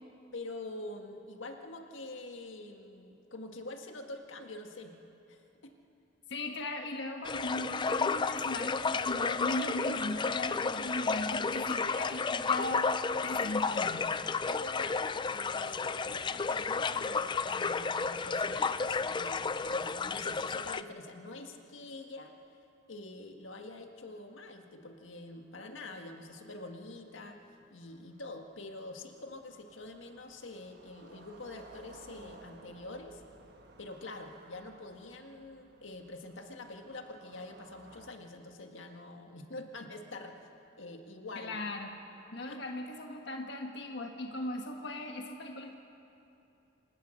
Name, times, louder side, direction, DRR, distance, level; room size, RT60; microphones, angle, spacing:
voice 1, 0.3-4.9 5.3-5.7 10.7-10.9 14.4-22.3 22.9-27.4 27.7-33.2 33.8-40.4 40.8-41.6 42.5-42.6, left 2 dB, 90° left, 4 dB, 1.8 m, -46 dB
voice 2, 6.3-12.9 13.2-14.1 41.3-41.9 42.3-45.7, left 1 dB, 65° left, 3 dB, 1.4 m, -38 dB
sound 1, 7.2-20.8, left 4 dB, 25° left, 0.4 m, -32 dB
sound 2, 25.1-25.2 25.6-25.7 25.9-38.1, right 2 dB, 60° right, 1.6 m, -58 dB
27.5 x 16.5 x 6.5 m, 2.7 s
head